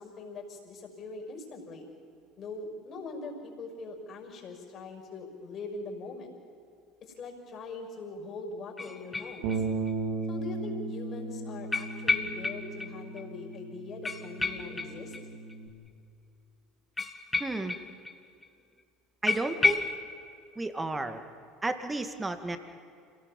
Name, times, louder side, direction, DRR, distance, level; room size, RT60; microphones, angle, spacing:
voice 1, 0.0-1.9 2.4-6.3 7.0-9.6 10.3-15.2, left 3 dB, 45° left, 2 dB, 6.1 m, -42 dB
sound 1, 8.8-9.9 10.2-10.3 11.7-12.9 13.2-13.3 13.5-13.6 14.0-15.5 17.0-18.2 18.4-18.5 18.8-18.9 19.3-20.0, left 3 dB, 15° left, 1.9 m, -31 dB
Bass guitar, 9.4-15.7, right 3 dB, 70° right, 3.9 m, -36 dB
voice 2, 17.4-17.8 19.2-19.8 20.6-21.2 21.6-22.6, right 2 dB, 15° right, 8 dB, 2.2 m, -32 dB
28.0 x 18.0 x 7.4 m, 2.4 s
hypercardioid pair, 70°, 0 cm